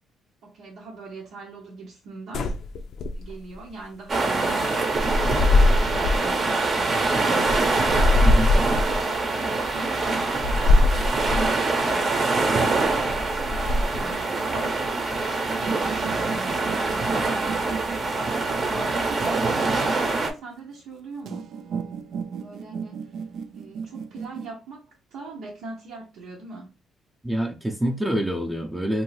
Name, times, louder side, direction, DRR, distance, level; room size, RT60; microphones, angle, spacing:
voice 1, 0.4-2.5 3.1-4.7 5.1-7.8 8.4-12.7 13.1-17.4 17.9-21.5 22.3-23.2 23.5-26.7, right 3 dB, 90° right, 0.9 m, -41 dB
sound 1, 2.3-3.5 4.4-6.3 6.8-9.0 9.6-9.8 10.4-11.5 12.1-12.4 12.8-14.1, left 2 dB, 70° left, 0.4 m, -22 dB
sound 2, 4.1-20.3, right 3 dB, 40° right, 0.8 m, -24 dB
voice 2, 8.2-8.5 27.2-29.0, right 1 dB, 10° right, 0.5 m, -26 dB
sound 3, 15.5-20.0 21.3-24.5, right 6 dB, 70° right, 0.3 m, -35 dB
2.6 x 2.6 x 3.1 m
cardioid pair, 90°, 0 cm